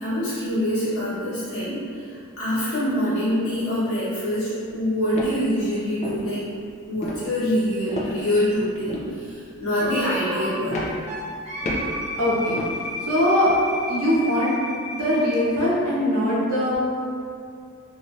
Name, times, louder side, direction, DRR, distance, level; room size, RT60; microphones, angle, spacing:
voice 1, 0.0-6.4 6.9-10.8, equal, 75° left, -13 dB, 1.1 m, -25 dB
sound 1, 4.7-4.8 5.1-5.4 6.0-6.3 7.0-7.3 7.9-8.5 8.9-9.1 9.8-10.1 10.7-11.3 11.6-12.0 12.5-12.8 13.4-13.7, left 1 dB, 30° left, 0.3 m, -31 dB
Wind instrument woodwind instrument, 9.8-15.5, left 1 dB, 30° right, 0.5 m, -32 dB
voice 2, 12.2-12.6 13.1-13.5 13.9-14.6 14.9-16.8, left 1 dB, 90° right, -7 dB, 0.9 m, -21 dB
3.1 x 2.6 x 2.5 m, 2.3 s
head